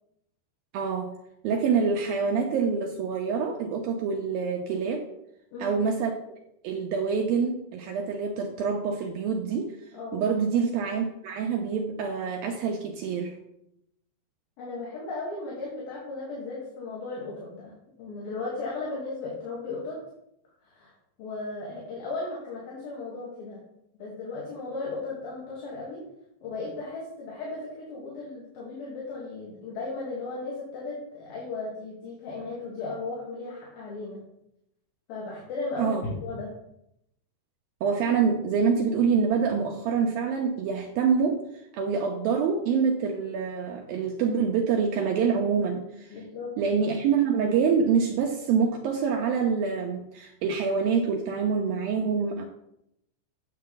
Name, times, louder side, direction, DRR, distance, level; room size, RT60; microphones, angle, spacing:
voice 1, 0.7-1.2 1.4-5.1 5.6-6.4 6.6-9.7 10.1-13.4 35.8-36.0 37.8-41.4 41.7-46.2 46.6-52.4, right 6 dB, 85° right, 2 dB, 2.1 m, -26 dB
voice 2, 14.6-20.0 20.6-20.9 21.2-23.6 24.0-26.0 26.4-34.2 35.1-36.6 46.1-46.5, left 3 dB, 60° left, -5 dB, 3.4 m, -36 dB
9.6 x 7.5 x 3.9 m, 0.80 s
omnidirectional pair, 5.2 m